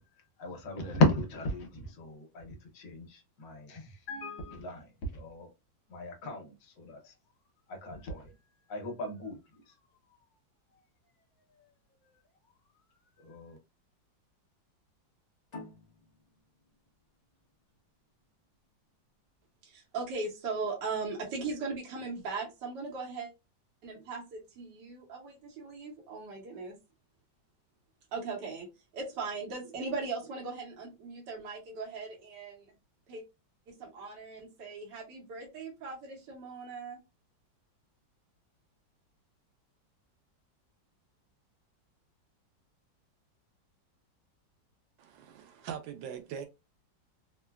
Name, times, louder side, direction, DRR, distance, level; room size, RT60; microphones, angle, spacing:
voice 1, 0.4-5.5 5.9-7.1 7.7-8.3 8.7-9.8 13.2-13.6, left 2 dB, 70° left, 1.5 m, -34 dB
sound 1, 15.5-18.7, left 2 dB, 30° left, 0.7 m, -51 dB
voice 2, 19.6-23.3 23.8-26.8 28.1-28.7 28.9-32.7 33.1-33.2 33.7-37.0, right 4 dB, 70° right, 1.5 m, -38 dB
voice 3, 45.0-46.5, right 8 dB, 85° right, 1.3 m, -41 dB
3.7 x 2.1 x 2.3 m
omnidirectional pair, 2.0 m